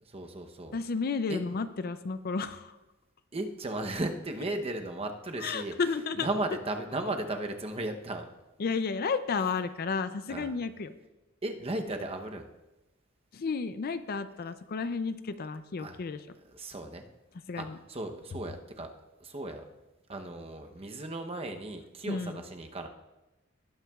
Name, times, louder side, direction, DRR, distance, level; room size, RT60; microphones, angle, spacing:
voice 1, 0.1-0.8 1.3-1.4 3.3-5.7 6.2-8.3 10.3-10.5 11.4-12.4 15.8-16.0 16.5-17.1 17.6-18.9 19.2-19.6 20.1-22.9, right 2 dB, 30° right, 5 dB, 0.8 m, -35 dB
voice 2, 0.7-2.7 5.4-6.3 8.6-10.9 13.3-16.3 17.5-17.8 22.1-22.4, left 4 dB, 45° left, 12 dB, 0.4 m, -32 dB
18.5 x 8.8 x 2.4 m, 1.0 s
head